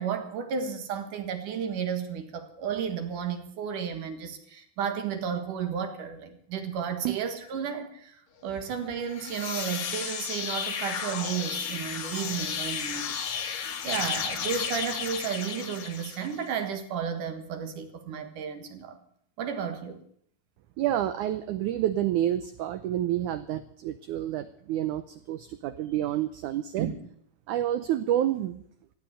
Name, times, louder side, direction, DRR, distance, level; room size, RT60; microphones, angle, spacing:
voice 1, 0.0-8.2 8.4-13.1 13.8-19.0 19.4-20.0 26.8-26.9, right 7 dB, 60° right, 2.9 m, -33 dB
sound 1, 9.0-16.4, left 7 dB, 65° left, 3.2 m, -33 dB
voice 2, 20.8-26.9 27.5-28.6, right 12 dB, 80° right, 1.8 m, -29 dB
15.0 x 9.2 x 9.9 m
omnidirectional pair, 4.4 m